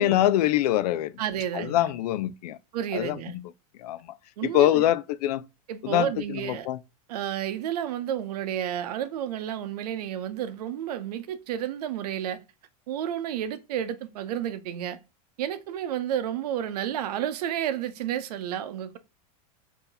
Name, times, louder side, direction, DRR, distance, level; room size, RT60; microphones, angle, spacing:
voice 1, 0.0-1.1 1.5-2.6 2.9-3.4 3.8-4.0 4.4-5.4 5.8-6.8, left 13 dB, 85° left, 0.4 m, -24 dB
voice 2, 1.2-1.9 2.7-3.4 4.4-4.8 5.7-6.7 7.1-12.4 12.9-15.0 15.4-19.0, right 10 dB, 85° right, 0.7 m, -31 dB
4.0 x 2.8 x 3.8 m
supercardioid pair, 150°, 20 cm